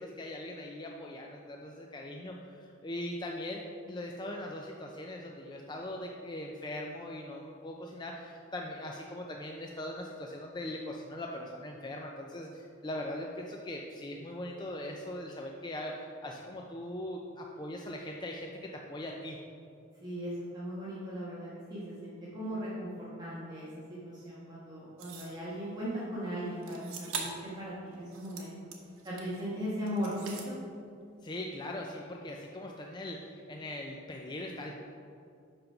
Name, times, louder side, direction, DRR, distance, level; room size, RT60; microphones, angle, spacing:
voice 1, 0.0-19.4 31.2-34.7, left 1 dB, 20° left, 0 dB, 0.4 m, -40 dB
voice 2, 20.0-28.5 29.0-30.5, equal, 20° right, -9 dB, 1.3 m, -38 dB
sound 1, 25.0-25.4 26.6-27.5 27.9-29.4 29.9-30.5, right 5 dB, 80° right, 1.0 m, -42 dB
5.8 x 5.2 x 5.7 m, 2.4 s
head